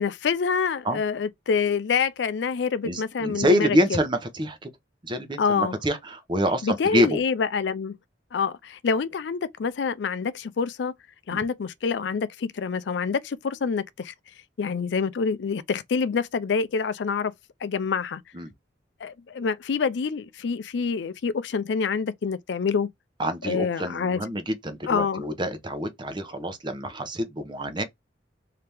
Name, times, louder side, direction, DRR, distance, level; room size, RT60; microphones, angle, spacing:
voice 1, 0.0-3.7 5.4-5.8 6.6-7.9 8.3-10.9 11.3-14.1 14.6-17.3 17.6-18.2 19.0-22.9 23.4-24.2 24.9-25.2, left 5 dB, 70° left, 0.4 m, -26 dB
voice 2, 2.8-4.7 5.0-7.2 11.3-11.4 18.3-18.5 23.2-27.8, equal, 25° right, 0.7 m, -26 dB
3.3 x 2.8 x 3.3 m
head